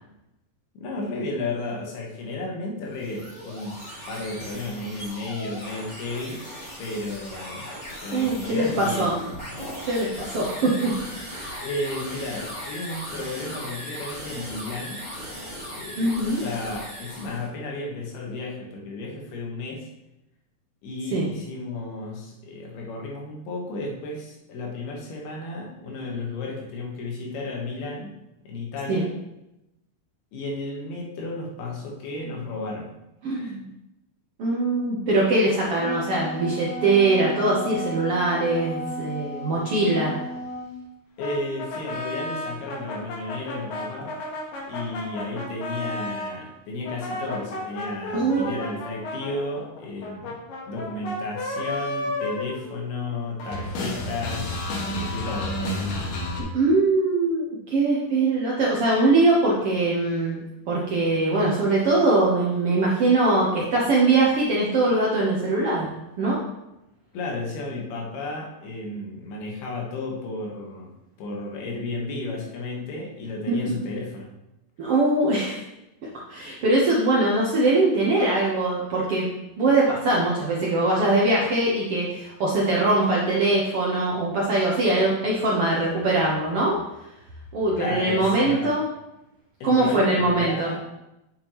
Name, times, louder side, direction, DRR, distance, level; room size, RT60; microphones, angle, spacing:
voice 1, 0.8-3.8 4.1-6.5 6.8-7.7 8.0-9.1 11.6-15.0 15.7-19.9 20.8-28.2 28.4-29.1 30.3-32.9 33.3-33.6 41.2-44.2 44.7-50.4 50.7-56.1 67.1-70.9 71.2-74.3 87.8-88.8 89.6-90.8, left 2 dB, 90° left, -1 dB, 3.5 m, -33 dB
sound 1, 2.8-17.5, equal, 15° left, 2.1 m, -38 dB
voice 2, 8.1-9.1 9.9-11.6 16.0-16.4 21.1-21.3 28.9-29.0 33.2-33.6 34.4-40.2 48.1-48.6 56.5-65.9 66.2-66.4 73.5-73.8 74.8-75.6 76.3-79.3 79.6-86.8 87.5-88.9 89.6-90.7, right 2 dB, 75° right, -4 dB, 1.3 m, -22 dB
Wind instrument woodwind instrument, 35.6-40.8, left 1 dB, 35° left, 2.2 m, -35 dB
sound 2, 41.2-46.4 46.8-53.1 53.4-56.4, left 1 dB, 70° left, 3.0 m, -32 dB
8.8 x 7.3 x 3.1 m, 0.91 s
omnidirectional pair, 4.3 m